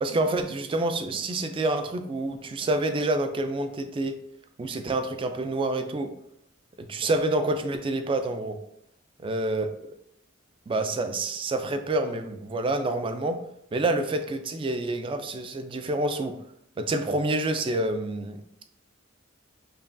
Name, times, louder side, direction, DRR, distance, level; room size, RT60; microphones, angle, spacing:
voice 1, 0.0-4.2 4.6-6.1 6.8-8.6 9.2-9.9 10.7-13.4 13.7-16.4 16.8-18.4, right 2 dB, 25° right, 7 dB, 0.3 m, -27 dB
5.5 x 2.3 x 2.5 m, 0.74 s
head